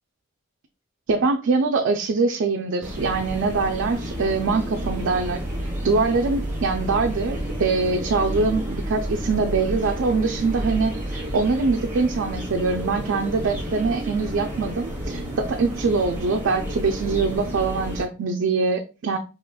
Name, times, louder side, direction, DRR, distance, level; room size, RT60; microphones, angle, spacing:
voice 1, 1.1-5.4 5.8-19.2, right 4 dB, 90° right, 0.5 m, -23 dB
sound 1, 2.8-18.0, equal, 15° right, 1.2 m, -30 dB
4.9 x 2.9 x 2.3 m
head